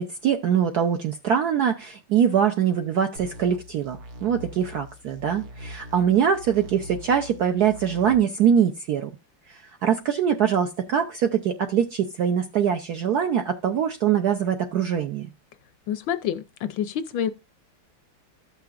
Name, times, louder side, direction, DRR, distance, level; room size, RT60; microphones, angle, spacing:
voice 1, 0.0-9.1 9.5-15.3, right 8 dB, 70° right, 0.9 m, -23 dB
sound 1, 3.2-8.2, equal, 85° right, 2.5 m, -42 dB
voice 2, 15.9-17.3, left 9 dB, 70° left, 1.2 m, -27 dB
14.5 x 5.8 x 2.4 m
omnidirectional pair, 2.4 m